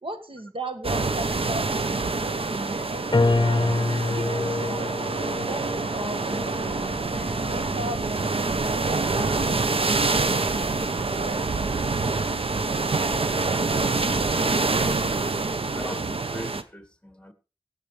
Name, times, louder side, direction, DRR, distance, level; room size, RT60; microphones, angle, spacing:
voice 1, 0.0-3.7 4.1-6.9 7.3-8.6 9.1-11.4, right 1 dB, 75° right, 1.8 m, -37 dB
sound 1, 0.8-16.6, right 3 dB, 90° right, 0.8 m, -26 dB
sound 2, 3.1-9.6, left 2 dB, 55° left, 0.8 m, -28 dB
voice 2, 15.7-17.3, left 1 dB, 10° left, 2.1 m, -42 dB
21.0 x 8.4 x 3.3 m
wide cardioid pair, 45°, 9 cm